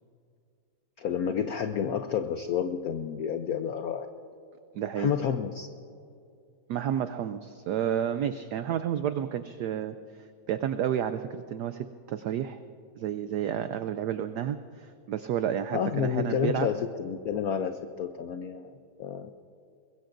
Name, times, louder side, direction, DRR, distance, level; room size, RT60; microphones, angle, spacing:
voice 1, 1.0-4.1 5.0-5.7 15.7-18.7 19.0-19.3, left 8 dB, 80° left, 7 dB, 0.8 m, -30 dB
voice 2, 4.7-5.1 6.7-12.6 13.0-16.7, right 9 dB, 85° right, 10 dB, 0.9 m, -31 dB
23.0 x 21.5 x 2.6 m, 2.4 s
omnidirectional pair, 2.3 m